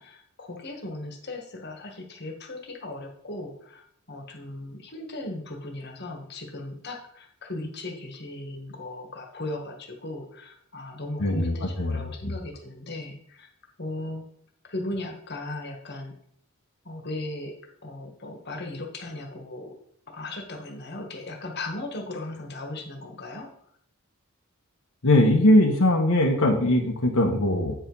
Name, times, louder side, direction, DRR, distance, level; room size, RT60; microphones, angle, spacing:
voice 1, 0.0-13.5 13.8-14.2 14.6-16.1 16.8-17.5 17.8-19.7 20.1-23.5, left 2 dB, 50° left, 2 dB, 1.5 m, -37 dB
voice 2, 11.2-12.0 25.0-27.7, left 1 dB, 80° left, 1 dB, 1.2 m, -20 dB
8.6 x 4.8 x 5.4 m, 0.69 s
head